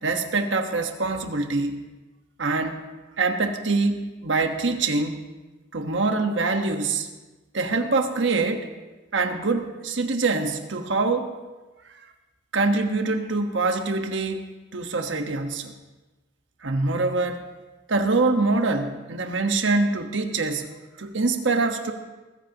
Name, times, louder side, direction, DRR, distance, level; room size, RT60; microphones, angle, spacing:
voice 1, 0.0-1.8 2.4-2.8 3.2-5.2 5.7-7.1 7.5-8.7 9.1-11.3 12.5-15.7 16.6-17.4 17.9-20.7 21.0-21.9, right 3 dB, 90° right, 5 dB, 1.3 m, -24 dB
20.5 x 14.5 x 2.9 m, 1.2 s
head